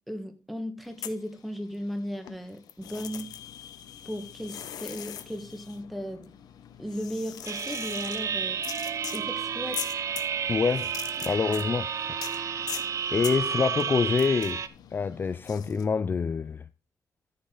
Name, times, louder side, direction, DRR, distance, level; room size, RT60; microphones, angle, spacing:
voice 1, 0.1-3.3 4.0-6.3 6.8-8.6 9.1-9.9, equal, ahead, 1.6 m, -36 dB
sound 1, 0.8-1.9 2.2-15.9, left 10 dB, 80° left, 0.9 m, -42 dB
sound 2, 7.5-14.7, right 7 dB, 55° right, 0.7 m, -31 dB
voice 2, 10.5-10.9 11.2-11.9 12.5-12.7 13.1-14.6 14.9-16.6, left 5 dB, 30° left, 0.3 m, -26 dB
14.0 x 5.4 x 3.9 m
cardioid pair, 120°, 7 cm